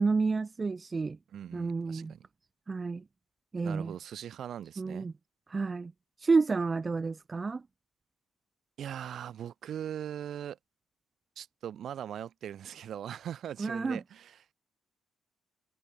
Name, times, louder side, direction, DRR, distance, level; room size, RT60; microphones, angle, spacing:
voice 1, 0.0-1.2 1.5-2.1 2.7-3.0 3.5-3.9 4.8-5.1 5.5-5.9 6.2-7.6 13.6-14.0, right 4 dB, 30° right, 0.6 m, -30 dB
voice 2, 1.3-2.3 3.6-5.1 8.8-10.6 11.4-14.5, right 9 dB, 65° right, 2.4 m, -40 dB
cardioid pair, 90°, 0 cm